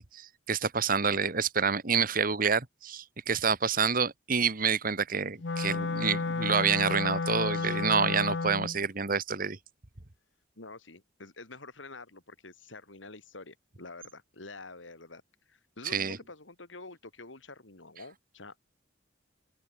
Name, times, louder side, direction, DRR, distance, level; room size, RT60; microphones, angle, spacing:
voice 1, 0.0-9.6 15.8-16.2, right 6 dB, 45° right, 1.7 m, -28 dB
Wind instrument woodwind instrument, 5.4-8.8, left 3 dB, 65° left, 0.8 m, -31 dB
voice 2, 10.6-15.2 15.5-18.6, left 3 dB, 85° left, 3.4 m, -47 dB
open air
head